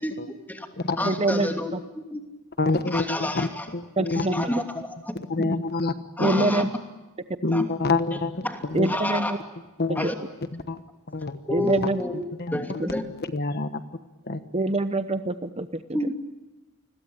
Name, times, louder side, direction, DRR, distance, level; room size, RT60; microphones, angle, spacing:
voice 1, 0.0-0.7 1.0-2.2 2.9-3.7 4.1-5.1 5.4-5.5 6.2-6.7 7.5-7.7 8.1-8.2 8.4-9.4 9.9-10.1 11.5-12.1 12.5-13.0 15.9-16.1, left 1 dB, 10° left, 4 dB, 2.9 m, -30 dB
voice 2, 1.0-1.5 4.0-4.5 6.2-6.7 8.7-9.4 10.0-10.1 11.5-12.0 12.8-12.9 14.5-15.7, right 2 dB, 30° right, 10 dB, 0.9 m, -24 dB
voice 3, 2.6-3.5 3.7-4.5 5.3-6.5 7.4-8.3 8.7-8.9 9.8-10.1 10.7-10.8 11.1-11.4 12.7-12.8 13.3-13.7 14.3-14.4, left 3 dB, 45° left, 10 dB, 1.2 m, -26 dB
29.0 x 21.5 x 8.8 m, 1.1 s
head